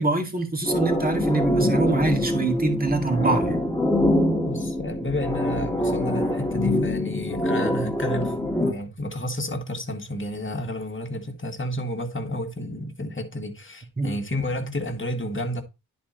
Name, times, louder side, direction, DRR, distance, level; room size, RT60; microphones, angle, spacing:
voice 1, 0.0-3.5 14.0-14.1, right 2 dB, 20° right, 2.1 m, -24 dB
sound 1, 0.6-8.7, left 1 dB, 10° left, 1.8 m, -24 dB
voice 2, 3.2-3.5 4.4-15.6, left 1 dB, 30° left, 1.9 m, -31 dB
10.0 x 4.4 x 3.9 m
cardioid pair, 50°, 40 cm